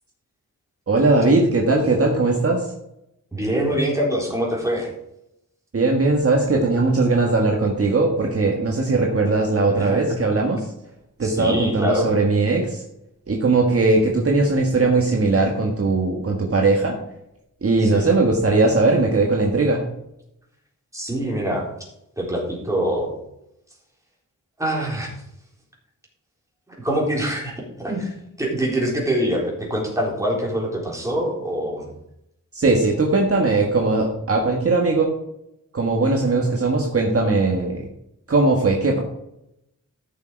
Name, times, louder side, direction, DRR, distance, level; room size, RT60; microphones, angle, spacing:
voice 1, 0.9-2.6 5.7-10.7 11.2-12.8 13.3-17.0 17.6-19.9 32.5-35.1 35.7-37.9 38.3-39.0, right 3 dB, 45° right, 0 dB, 1.6 m, -19 dB
voice 2, 3.3-4.9 9.7-10.2 11.2-12.1 17.8-18.1 20.9-21.7 22.2-23.1 24.6-25.2 26.7-31.9, equal, 10° right, -2 dB, 3.9 m, -24 dB
14.0 x 6.4 x 4.6 m, 0.81 s
wide cardioid pair, 120°, 32 cm